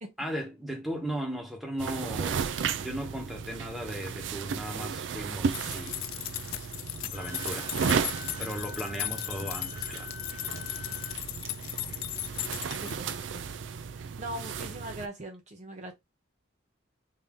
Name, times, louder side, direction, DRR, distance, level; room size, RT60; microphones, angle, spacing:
voice 1, 0.2-2.4 2.8-6.0 7.1-7.7 8.4-10.1, equal, ahead, 1.1 m, -36 dB
sound 1, 1.8-15.1, right 6 dB, 70° right, 0.4 m, -34 dB
sound 2, 5.5-13.3, left 15 dB, 85° left, 0.3 m, -37 dB
Wind instrument woodwind instrument, 7.1-11.2, left 3 dB, 35° left, 0.6 m, -46 dB
voice 2, 12.8-13.5 13.9-15.9, right 1 dB, 35° right, 0.7 m, -41 dB
3.6 x 2.7 x 3.6 m
head